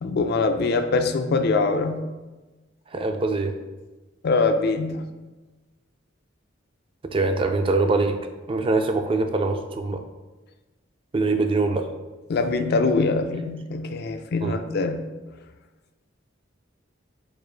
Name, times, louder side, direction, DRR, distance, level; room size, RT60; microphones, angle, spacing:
voice 1, 0.0-2.1 4.2-5.1 12.3-15.0, left 3 dB, 55° left, 8 dB, 0.4 m, -23 dB
voice 2, 2.9-3.6 7.0-8.2 8.5-10.0 11.1-11.9 14.4-14.6, right 3 dB, 30° right, 6 dB, 0.4 m, -23 dB
4.8 x 2.4 x 4.5 m, 1.2 s
head